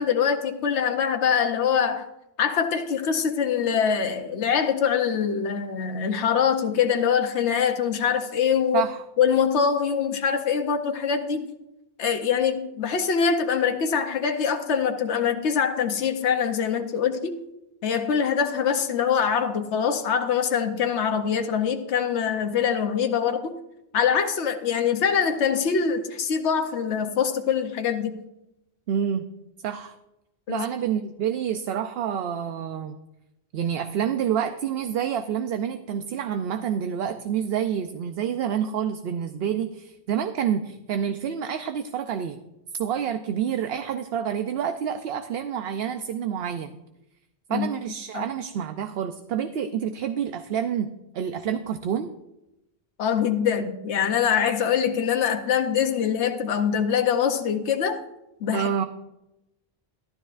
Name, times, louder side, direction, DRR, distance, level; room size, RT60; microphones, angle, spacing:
voice 1, 0.0-2.1 2.4-8.8 9.2-11.5 12.0-17.4 17.8-23.5 23.9-28.2 30.5-30.7 47.5-47.7 48.1-48.2 53.0-58.0 58.4-58.7, left 7 dB, 80° left, 6 dB, 1.1 m, -24 dB
voice 2, 8.7-9.0 28.9-29.3 29.6-29.9 30.5-33.0 33.5-42.4 42.8-46.8 47.5-52.1 58.5-58.8, right 8 dB, 70° right, 8 dB, 0.8 m, -28 dB
14.0 x 12.5 x 2.5 m, 0.90 s
omnidirectional pair, 1.1 m